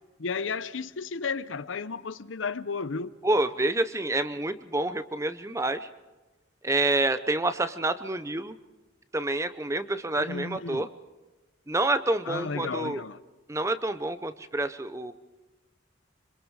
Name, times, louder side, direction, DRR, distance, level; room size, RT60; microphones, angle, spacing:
voice 1, 0.2-3.1 10.2-10.8 12.3-13.2, left 5 dB, 90° left, 0.8 m, -33 dB
voice 2, 3.2-5.9 6.6-8.5 9.1-10.9 11.7-13.0 13.5-15.1, right 2 dB, 15° right, 0.8 m, -28 dB
26.0 x 25.5 x 4.9 m
head